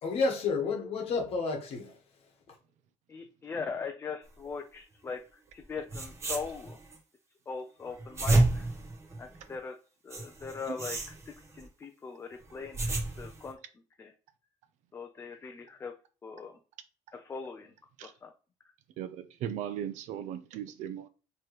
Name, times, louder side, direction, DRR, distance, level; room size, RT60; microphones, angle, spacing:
voice 1, 0.0-2.0 2.5-2.6, left 4 dB, 50° left, 1.1 m, -30 dB
voice 2, 3.1-5.2 5.5-6.8 7.5-8.7 9.2-9.8 10.0-12.8 13.2-13.6 14.0-14.1 14.9-15.9 16.2-16.6 17.1-17.7 18.0-18.3, left 5 dB, 20° left, 0.3 m, -40 dB
sound 1, 5.6-5.7 5.9-7.0 7.9-9.6 10.1-11.7 12.4-13.5, right 2 dB, 20° right, 0.9 m, -30 dB
voice 3, 19.0-21.1, right 10 dB, 70° right, 0.5 m, -37 dB
4.8 x 3.0 x 3.0 m
cardioid pair, 155°, 13 cm